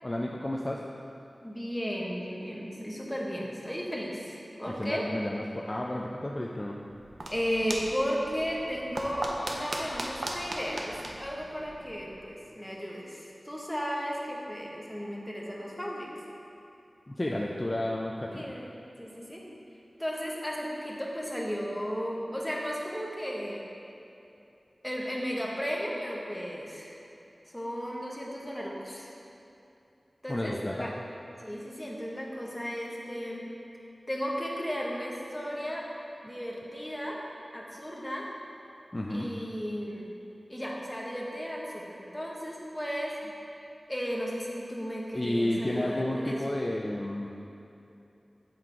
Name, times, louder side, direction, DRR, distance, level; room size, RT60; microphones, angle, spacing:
voice 1, 0.0-0.8 4.7-6.8 17.1-18.5 30.3-30.9 38.9-39.3 45.1-47.3, left 1 dB, 30° left, -1 dB, 0.4 m, -31 dB
voice 2, 1.4-5.1 7.3-16.2 18.3-19.5 20.0-23.7 24.8-27.0 27.5-29.1 30.2-30.9 31.4-33.5 34.1-35.9 36.2-37.2 37.5-38.3 39.1-40.1 40.5-43.3 43.9-46.4, equal, 10° left, -3 dB, 1.0 m, -35 dB
sound 1, 6.8-12.2, right 1 dB, 70° right, 0.6 m, -38 dB
7.6 x 3.7 x 4.6 m, 2.8 s
wide cardioid pair, 75°, 0 cm